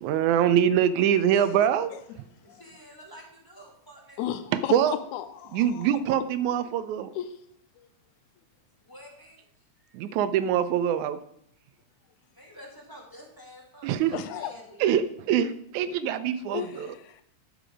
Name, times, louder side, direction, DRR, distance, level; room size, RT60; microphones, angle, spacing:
voice 1, 0.0-1.9 4.5-4.9 5.5-7.1 9.9-11.2 13.8-14.2 14.8-16.9, right 9 dB, 80° right, 2.0 m, -24 dB
voice 2, 2.4-4.2 8.8-9.4 9.8-10.0 12.3-14.9 15.9-16.1, equal, 15° left, 0.9 m, -49 dB
voice 3, 4.2-5.9 7.2-7.3 14.1-14.5 16.5-17.2, left 11 dB, 85° left, 2.1 m, -34 dB
11.5 x 5.1 x 5.0 m
omnidirectional pair, 3.5 m